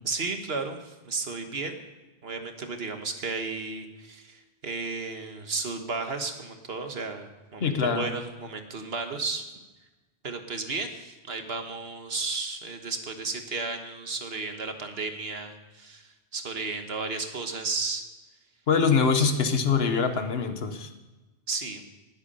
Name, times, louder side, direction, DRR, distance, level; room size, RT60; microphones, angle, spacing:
voice 1, 0.0-1.8 2.2-9.4 10.2-18.0 19.2-19.3 21.5-21.8, right 4 dB, 65° right, 6 dB, 1.6 m, -33 dB
voice 2, 7.6-8.1 18.7-20.9, left 5 dB, 65° left, 8 dB, 1.3 m, -24 dB
19.0 x 8.3 x 5.5 m, 1.1 s
omnidirectional pair, 1.1 m